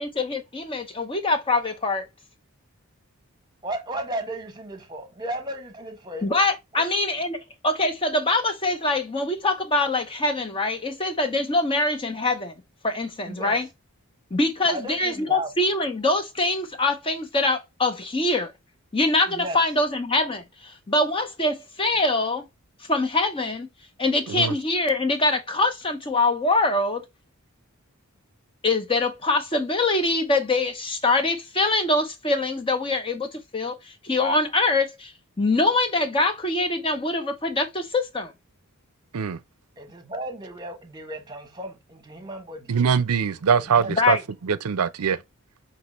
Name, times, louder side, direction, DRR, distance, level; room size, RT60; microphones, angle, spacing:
voice 1, 0.0-2.1 6.2-12.6 12.8-13.7 14.3-18.5 18.9-22.4 22.8-23.7 24.0-27.0 28.6-38.3 43.9-44.2, left 2 dB, 25° left, 0.7 m, -24 dB
voice 2, 3.6-6.3 6.7-6.9 13.2-13.6 14.7-15.5 19.3-19.6 39.8-42.7 43.6-44.0, right 1 dB, 20° right, 1.1 m, -34 dB
voice 3, 42.7-44.2 44.5-45.2, right 6 dB, 80° right, 0.5 m, -22 dB
5.9 x 3.0 x 3.0 m
head